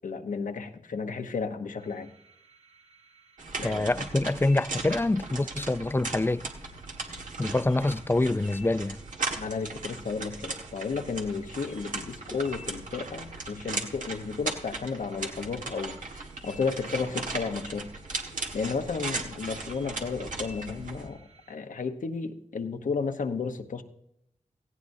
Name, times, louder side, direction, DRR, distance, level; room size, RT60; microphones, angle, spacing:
voice 1, 0.0-2.1 3.6-3.9 9.4-17.9 18.5-23.8, left 5 dB, 85° left, 0.9 m, -33 dB
sound 1, 1.8-21.5, equal, 60° right, 2.3 m, -56 dB
sound 2, 3.4-21.1, right 3 dB, 85° right, 1.6 m, -37 dB
voice 2, 3.6-6.4 7.4-9.0, left 2 dB, 15° left, 0.4 m, -26 dB
17.0 x 15.5 x 2.7 m
cardioid pair, 45°, 13 cm